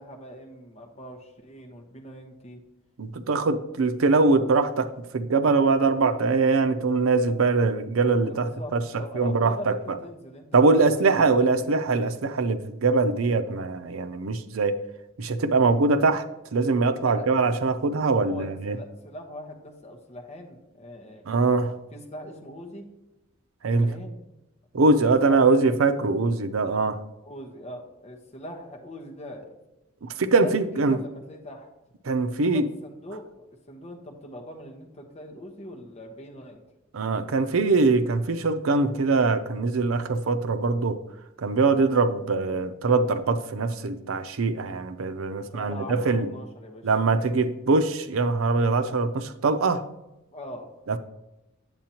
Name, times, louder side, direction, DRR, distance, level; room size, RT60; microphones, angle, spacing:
voice 1, 0.0-2.6 8.3-11.7 17.0-17.3 18.0-21.6 21.9-22.8 23.8-24.2 24.9-25.6 27.2-29.5 30.3-31.7 32.3-36.6 45.4-46.9 50.3-50.7, equal, 30° left, 1.1 m, -41 dB
voice 2, 3.0-8.8 9.1-9.8 10.5-14.8 15.2-16.3 16.5-18.8 21.3-21.7 23.6-23.9 24.7-27.0 30.0-31.0 32.0-32.7 36.9-41.0 41.4-46.3 46.8-49.8 50.9-51.0, right 3 dB, 90° right, 0.6 m, -22 dB
8.9 x 7.7 x 2.9 m
head